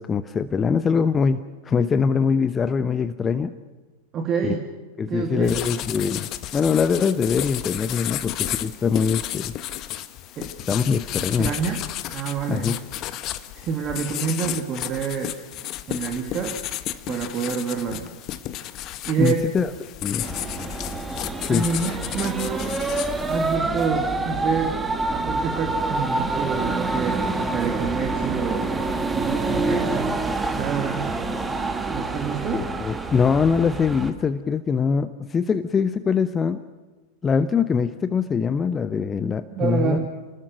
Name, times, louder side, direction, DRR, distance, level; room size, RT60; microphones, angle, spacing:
voice 1, 0.0-3.5 4.4-4.6 5.0-9.5 10.7-11.5 12.5-12.8 19.2-19.7 20.0-20.3 21.5-21.6 32.5-36.6 37.2-40.0, left 6 dB, 20° left, 12 dB, 0.9 m, -23 dB
voice 2, 4.1-4.7 5.1-5.5 10.4-10.5 11.4-11.8 12.1-12.7 13.5-15.4 15.9-16.6 17.1-18.1 19.1-19.5 21.5-22.9 23.3-24.8 25.1-27.2 27.5-28.7 29.1-30.1 30.5-31.1 31.9-32.6 39.5-40.1, right 6 dB, 30° right, 4 dB, 2.4 m, -27 dB
sound 1, 5.4-23.6, left 13 dB, 35° left, 1.3 m, -33 dB
sound 2, 20.2-34.1, right 3 dB, 10° right, 2.1 m, -27 dB
29.5 x 20.0 x 6.3 m, 1.3 s
figure-of-eight pair, 90°, 0 cm